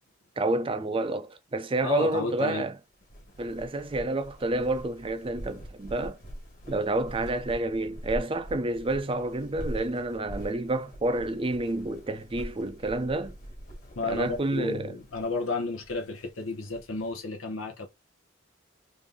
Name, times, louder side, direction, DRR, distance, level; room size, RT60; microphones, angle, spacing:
voice 1, 0.4-2.7 3.4-6.2 6.7-13.4 14.0-15.0, right 2 dB, 25° right, 0.5 m, -29 dB
voice 2, 1.8-2.7 14.0-17.9, left 3 dB, 90° left, 0.8 m, -32 dB
sound 1, 2.9-17.1, equal, 45° left, 1.6 m, -44 dB
3.3 x 2.6 x 3.4 m
head